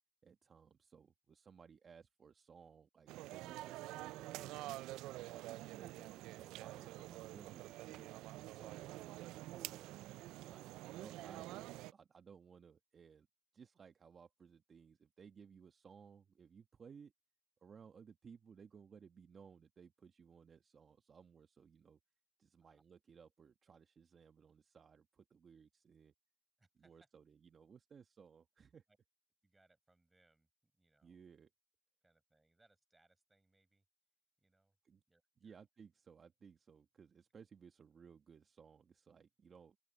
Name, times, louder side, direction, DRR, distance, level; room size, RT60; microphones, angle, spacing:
voice 1, 0.2-8.1 8.5-9.9 10.3-13.3 13.5-17.1 17.6-22.0 22.4-26.1 26.8-28.8 31.0-31.5 34.8-35.0 35.4-39.8, right 6 dB, 35° right, 1.3 m, -60 dB
sound 1, 3.1-11.9, right 17 dB, 75° right, 0.4 m, -48 dB
voice 2, 26.6-27.1 28.9-29.0 29.4-31.2 32.0-33.9 34.4-34.8 35.1-35.6, right 2 dB, 15° right, 5.5 m, -75 dB
open air
cardioid pair, 105°, 0 cm